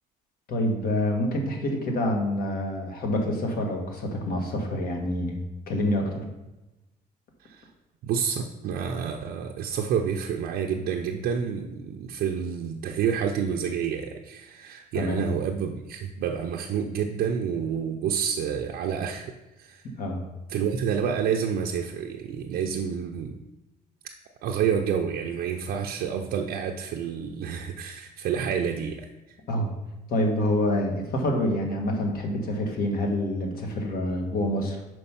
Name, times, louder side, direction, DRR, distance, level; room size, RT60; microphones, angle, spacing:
voice 1, 0.5-5.4 5.7-6.2 14.9-15.3 20.0-20.2 29.5-29.7 30.1-34.8, left 1 dB, 60° left, 2 dB, 1.4 m, -27 dB
voice 2, 8.0-19.3 19.6-19.8 20.5-23.4 24.4-29.4, right 7 dB, 70° right, 1 dB, 0.5 m, -29 dB
5.3 x 4.6 x 5.7 m, 1.0 s
cardioid pair, 110°, 17 cm